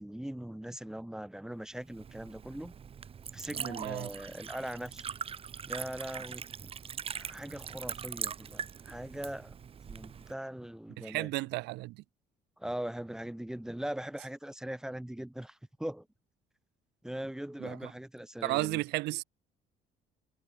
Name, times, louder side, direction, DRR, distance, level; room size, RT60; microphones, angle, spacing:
voice 1, 0.0-2.7 3.3-5.0 5.7-6.7 7.1-9.5 9.9-11.3 12.6-16.1 17.0-18.8, right 1 dB, 5° right, 0.6 m, -40 dB
Liquid, 1.8-10.3, right 7 dB, 35° right, 0.9 m, -42 dB
voice 2, 3.5-4.1 11.0-12.0 17.6-17.9 18.4-19.2, right 21 dB, 80° right, 0.4 m, -34 dB
cardioid pair, 110°, 17 cm